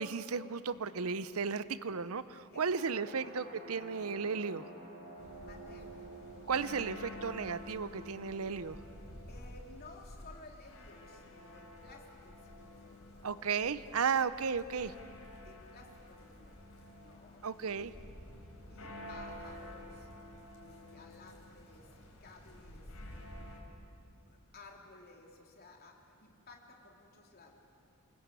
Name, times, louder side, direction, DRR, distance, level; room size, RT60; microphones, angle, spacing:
voice 1, 0.0-4.7 6.5-8.8 13.2-14.9 17.4-17.9, right 5 dB, 75° right, 15 dB, 0.7 m, -34 dB
voice 2, 2.5-3.4 5.4-5.9 9.3-13.1 15.4-16.6 16.9-18.1 18.7-23.3 24.3-27.5, left 3 dB, 45° left, 1 dB, 3.2 m, -56 dB
sound 1, 2.5-10.4, right 2 dB, 50° right, 6.0 m, -53 dB
sound 2, 5.2-23.6, left 1 dB, 75° left, 4.6 m, -50 dB
28.5 x 20.0 x 8.2 m, 2.7 s
head